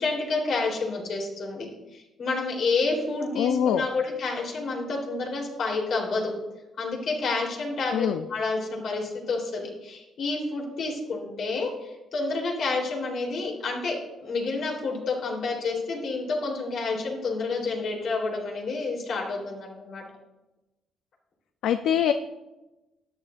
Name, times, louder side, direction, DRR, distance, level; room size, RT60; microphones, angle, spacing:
voice 1, 0.0-1.6 1.9-6.3 6.8-20.0, left 3 dB, 65° left, -1 dB, 3.6 m, -29 dB
voice 2, 3.4-3.8 7.9-8.3 21.6-22.1, left 9 dB, 85° left, 9 dB, 0.4 m, -23 dB
13.0 x 10.0 x 2.6 m, 1.0 s
cardioid pair, 90°, 0 cm